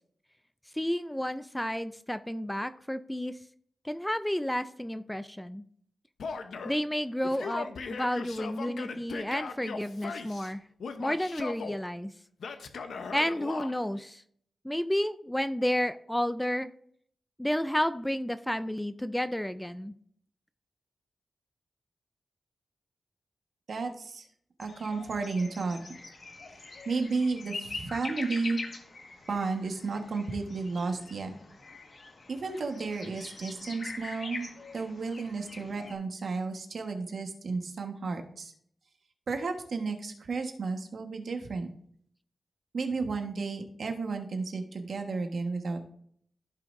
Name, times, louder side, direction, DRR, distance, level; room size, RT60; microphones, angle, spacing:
voice 1, 0.7-3.4 3.8-5.6 6.6-10.6 11.0-12.1 13.1-14.2 14.6-16.7 17.4-19.9, equal, 5° left, 11 dB, 0.3 m, -31 dB
Male speech man speaking / Yell, 6.2-6.8 7.2-10.5 10.8-11.8 12.4-13.7, left 5 dB, 90° left, 0.8 m, -38 dB
voice 2, 23.7-24.3 24.6-25.8 26.6-28.6 29.3-31.3 32.3-38.5 39.3-41.7 42.7-45.8, right 4 dB, 60° right, 4 dB, 1.4 m, -33 dB
sound 1, 24.6-35.9, left 3 dB, 50° left, 1.6 m, -43 dB
15.0 x 5.8 x 2.6 m, 0.64 s
wide cardioid pair, 150°, 0 cm